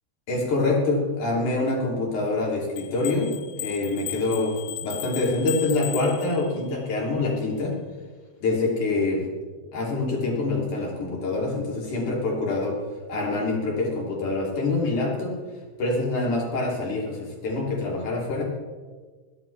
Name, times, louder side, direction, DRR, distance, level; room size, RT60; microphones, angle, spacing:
voice 1, 0.3-7.8 8.4-9.3 9.7-12.8 13.1-15.4 15.8-18.4, left 2 dB, 45° left, -2 dB, 3.8 m, -25 dB
sound 1, 2.8-6.7, left 13 dB, 85° left, 3.0 m, -36 dB
18.5 x 13.5 x 3.4 m, 1.4 s
omnidirectional pair, 5.7 m